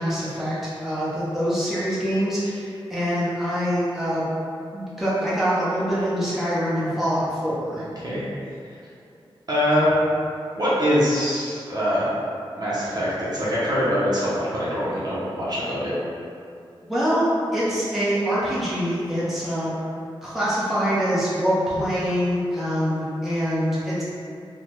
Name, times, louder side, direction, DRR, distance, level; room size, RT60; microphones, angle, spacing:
voice 1, 0.0-4.3 4.7-7.9 16.8-19.7 20.2-24.0, equal, 5° right, -10 dB, 0.9 m, -24 dB
voice 2, 7.7-8.2 9.5-9.9 10.6-12.1 12.6-15.9, equal, 45° right, -9 dB, 0.7 m, -23 dB
3.5 x 2.1 x 3.1 m, 2.5 s
wide cardioid pair, 100°, 9 cm